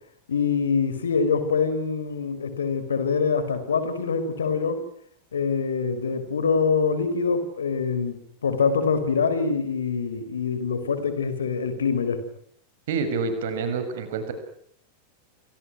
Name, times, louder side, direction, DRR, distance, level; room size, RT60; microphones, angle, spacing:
voice 1, 0.3-4.8 5.3-12.2, left 5 dB, 70° left, 12 dB, 4.6 m, -25 dB
voice 2, 12.9-14.3, right 4 dB, 55° right, 9 dB, 6.4 m, -27 dB
29.0 x 26.5 x 6.2 m, 0.65 s
figure-of-eight pair, 90°, 0 cm